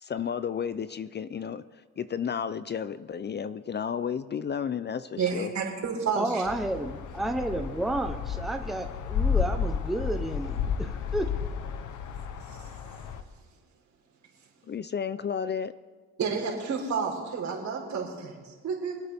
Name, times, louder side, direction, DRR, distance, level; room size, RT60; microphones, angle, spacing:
voice 1, 0.0-1.6 2.0-5.5 14.7-15.7, left 7 dB, 35° left, 15 dB, 0.5 m, -32 dB
voice 2, 5.2-6.5 12.5-12.7 16.2-19.0, right 5 dB, 65° right, 0 dB, 3.8 m, -31 dB
voice 3, 6.2-11.3, right 1 dB, ahead, 5 dB, 0.9 m, -31 dB
sound 1, 6.4-13.2, left 7 dB, 80° left, 1.0 m, -32 dB
26.0 x 8.7 x 3.6 m, 1.5 s
cardioid pair, 90°, 30 cm